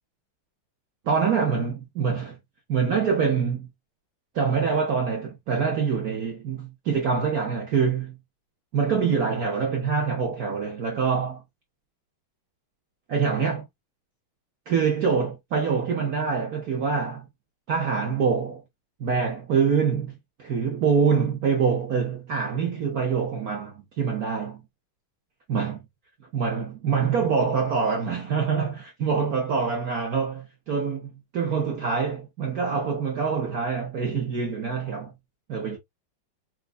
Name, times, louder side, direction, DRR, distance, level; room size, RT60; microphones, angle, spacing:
voice 1, 1.1-2.4 2.7-3.7 4.3-8.2 8.7-11.4 13.1-13.6 14.7-17.2 17.7-18.6 19.0-20.1 20.4-24.6 25.5-25.8 26.3-35.1 35.5-35.8, right 6 dB, 60° right, 1.0 m, -25 dB
4.4 x 2.6 x 2.4 m
omnidirectional pair, 2.4 m